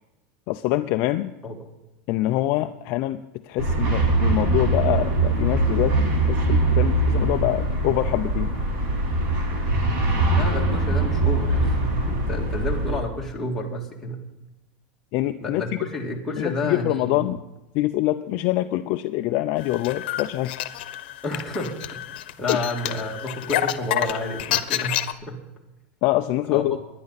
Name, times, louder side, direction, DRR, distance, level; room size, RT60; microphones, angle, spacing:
voice 1, 0.5-1.3 2.1-8.5 15.1-15.6 16.4-17.4 17.7-20.6 22.5-22.6 26.0-26.8, left 16 dB, 40° left, 8 dB, 0.5 m, -25 dB
sound 1, 3.6-13.0, right 2 dB, 45° right, 3.2 m, -22 dB
voice 2, 10.3-11.7 12.1-14.2 15.4-17.2 21.2-22.0 22.4-25.4 26.5-26.8, left 2 dB, 5° left, -3 dB, 2.0 m, -30 dB
sound 2, 19.6-25.1, left 13 dB, 70° left, 1.0 m, -28 dB
20.5 x 10.5 x 4.1 m, 1.0 s
supercardioid pair, 170°, 6 cm